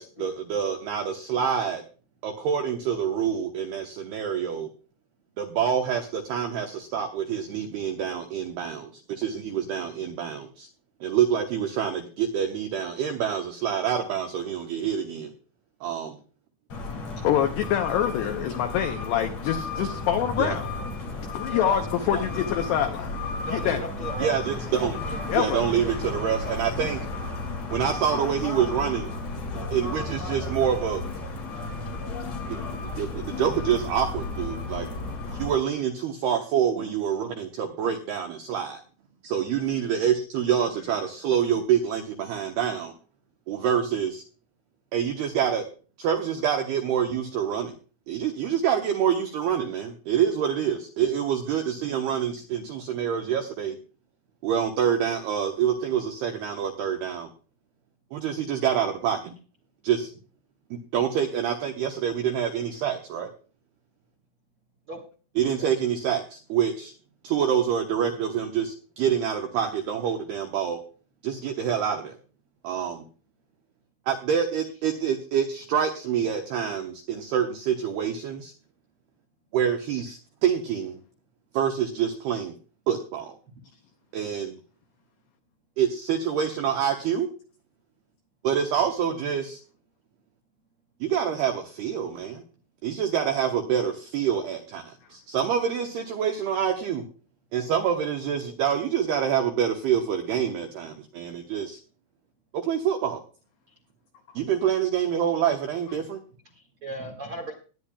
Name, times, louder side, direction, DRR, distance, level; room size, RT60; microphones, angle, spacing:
voice 1, 0.0-1.8 2.2-4.7 5.4-10.7 11.0-15.3 15.8-16.2 20.4-20.5 24.2-25.0 25.3-27.1 27.7-29.1 29.5-31.0 33.0-34.9 35.3-38.8 39.2-42.9 43.5-44.2 44.9-45.6 46.0-47.8 48.1-53.8 54.4-57.3 58.1-59.4 59.8-60.1 60.7-63.3 65.4-66.9 67.2-70.8 71.2-72.2 72.6-73.0 74.1-78.5 79.5-81.0 81.5-82.5 82.9-83.4 84.1-84.6 85.8-87.3 88.4-89.6 91.0-92.4 92.8-97.1 97.5-101.8 102.5-103.2 104.4-106.2, right 8 dB, 90° right, 4 dB, 2.2 m, -26 dB
sound 1, 16.7-35.5, left 3 dB, 40° left, 2.7 m, -33 dB
voice 2, 17.2-20.7 21.3-23.2 23.5-23.9 25.3-25.6 37.8-37.9, left 10 dB, 85° left, 5 dB, 2.3 m, -25 dB
voice 3, 21.5-21.8 22.1-22.2 23.4-24.7 25.1-26.0 41.5-41.6 64.9-65.0 65.4-65.7 106.5-107.5, right 1 dB, 55° right, 0 dB, 1.4 m, -37 dB
20.5 x 10.0 x 2.3 m, 0.38 s
omnidirectional pair, 5.9 m